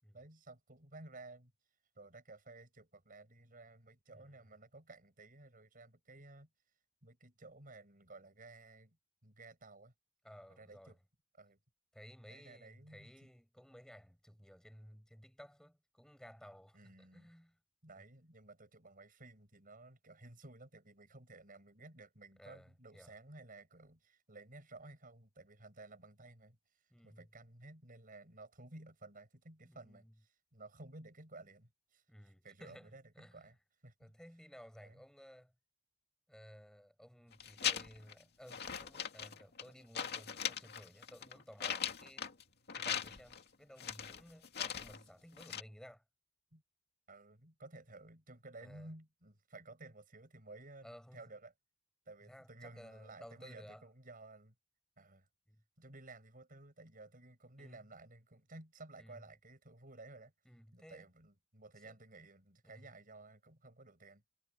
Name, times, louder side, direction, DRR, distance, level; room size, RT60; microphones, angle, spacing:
voice 1, 0.1-1.5 2.0-6.5 7.0-9.0 9.2-9.9 10.6-11.0 11.3-11.6 12.3-13.3 16.7-17.3 17.8-33.6 33.8-34.1 34.8-35.0 46.5-46.6 47.1-51.5 52.1-54.5 55.0-55.3 55.8-60.3 60.7-64.2, right 2 dB, 40° right, 6.9 m, -55 dB
voice 2, 10.2-10.9 11.9-17.6 18.0-18.1 22.4-23.2 26.9-27.3 29.7-30.1 32.1-33.5 34.0-35.5 36.3-42.3 42.7-46.0 48.6-48.9 50.8-51.3 52.3-53.8 55.5-55.6 57.6-57.8 59.0-59.2 60.5-61.1 61.8-61.9 62.6-62.9, equal, 5° left, 7.7 m, -57 dB
sound 1, 37.3-38.1 38.5-39.7 39.9-42.4 42.7-43.4 43.8-45.0 45.4-45.6, left 8 dB, 50° left, 2.4 m, -39 dB
head